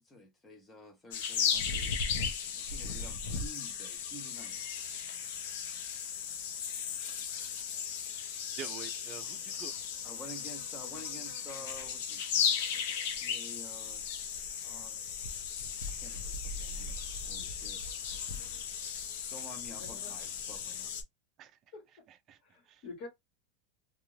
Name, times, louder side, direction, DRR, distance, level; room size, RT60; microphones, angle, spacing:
voice 1, 0.1-1.9 2.5-4.6 10.0-14.1 14.6-15.0 16.0-17.0 17.2-17.8 19.3-20.9, equal, 15° left, 0.8 m, -50 dB
sound 1, 1.1-21.0, left 7 dB, 75° left, 0.7 m, -36 dB
voice 2, 8.1-9.7 21.4-21.6 22.1-22.4 22.6-22.8, right 8 dB, 30° right, 0.4 m, -48 dB
voice 3, 19.7-20.1 21.7-21.8 22.4-23.1, left 4 dB, 50° left, 1.3 m, -47 dB
2.5 x 2.4 x 3.1 m
supercardioid pair, 160°, 0 cm